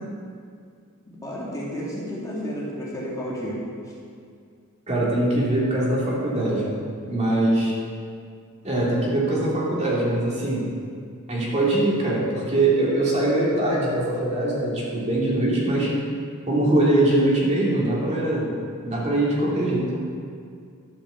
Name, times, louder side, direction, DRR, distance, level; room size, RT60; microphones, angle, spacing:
voice 1, 1.1-3.6, equal, 15° left, -6 dB, 2.3 m, -31 dB
voice 2, 4.9-6.7 7.1-7.8 8.6-10.7 11.3-15.9 16.5-18.6 18.8-19.9, right 1 dB, 35° right, -6 dB, 2.8 m, -22 dB
12.0 x 7.1 x 7.0 m, 2.3 s
head